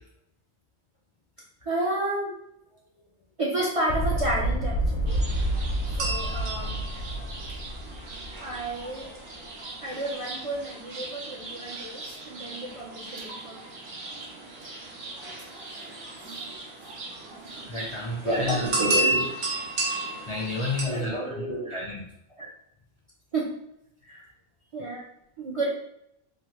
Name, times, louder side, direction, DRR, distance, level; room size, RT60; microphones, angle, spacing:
voice 1, 1.6-2.3 3.4-5.2 5.9-6.8 8.4-9.1 9.8-13.7 18.2-19.6 20.8-21.8 22.4-22.5 23.3-23.5 24.1-24.2 24.7-25.0 25.4-25.7, right 2 dB, 50° right, -4 dB, 0.4 m, -31 dB
sound 1, 3.9-9.1, right 1 dB, 85° left, 0.8 m, -29 dB
sound 2, 5.1-20.8, right 2 dB, 85° right, 1.0 m, -34 dB
voice 2, 17.7-18.6 20.3-21.1 21.7-22.0, left 3 dB, 50° left, -3 dB, 0.4 m, -31 dB
2.9 x 2.4 x 2.9 m, 0.77 s
omnidirectional pair, 1.0 m